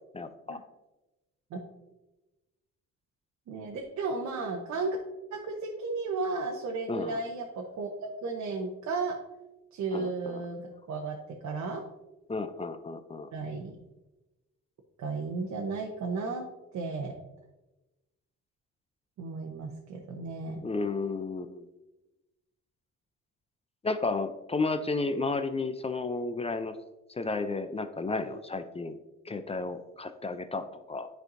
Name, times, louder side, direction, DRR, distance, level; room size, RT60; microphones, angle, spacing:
voice 1, 0.1-0.6 6.9-7.2 9.9-10.4 12.3-13.3 20.6-21.7 23.8-26.8 27.1-28.9 29.3-31.1, left 3 dB, 20° left, 10 dB, 0.4 m, -32 dB
voice 2, 3.5-5.0 5.3-7.9 8.2-9.1 9.7-11.2 11.4-11.8 13.3-13.8 15.0-16.4 16.7-17.1 19.2-20.6, right 3 dB, 65° right, 1 dB, 0.9 m, -34 dB
9.5 x 4.5 x 2.6 m, 1.0 s
cardioid pair, 90°, 30 cm